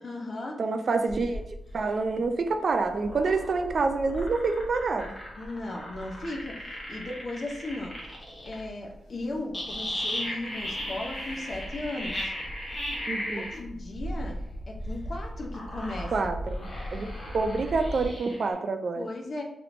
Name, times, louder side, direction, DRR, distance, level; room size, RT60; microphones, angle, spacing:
voice 1, 0.0-0.6 5.3-7.9 8.4-12.3 13.3-14.4 14.7-16.3 17.8-17.9 18.9-19.4, left 2 dB, 50° left, 1 dB, 0.6 m, -36 dB
voice 2, 0.6-1.4 1.7-5.1 13.1-13.5 16.1-19.1, right 4 dB, 55° right, 7 dB, 0.3 m, -27 dB
Bird / Wind, 1.1-18.1, equal, 80° left, 0.8 m, -41 dB
sound 1, 2.5-8.6 9.5-13.6 15.4-18.5, left 1 dB, 30° left, 1.0 m, -36 dB
3.3 x 2.9 x 2.5 m, 0.80 s
wide cardioid pair, 115°, 0 cm